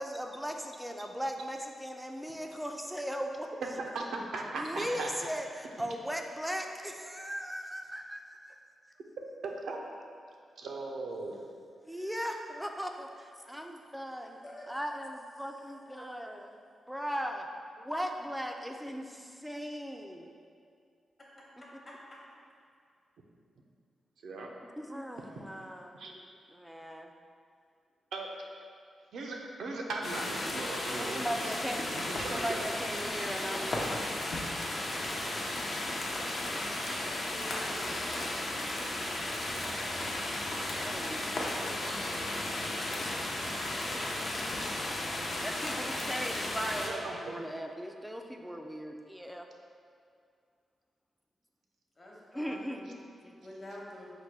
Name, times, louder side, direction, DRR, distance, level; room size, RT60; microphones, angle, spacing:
voice 1, 0.0-3.5 4.5-8.6 11.9-14.4 14.7-16.6 16.9-17.5 17.8-20.3 21.6-21.7 24.8-26.0 26.5-27.1 31.0-31.9 32.2-33.9 40.3-40.4 40.8-41.2 45.4-49.4 52.3-53.4, equal, 5° right, 3 dB, 0.3 m, -38 dB
voice 2, 3.8-5.3 5.8-5.9 9.7-9.8 10.6-11.4 24.2-24.5 25.9-26.1 28.1-28.3 29.1-31.5 31.9-32.6 41.6-42.0 46.1-46.3 46.8-47.2, right 3 dB, 80° right, 0 dB, 0.5 m, -38 dB
voice 3, 11.8-12.3 14.4-14.7 21.9-22.0 26.0-26.1 37.1-38.0 52.0-52.8 53.2-54.1, left 1 dB, 35° left, -4 dB, 0.9 m, -48 dB
sound 1, 30.0-46.9, left 1 dB, 55° left, 0.6 m, -34 dB
4.1 x 2.2 x 4.6 m, 2.3 s
cardioid pair, 85°, 0 cm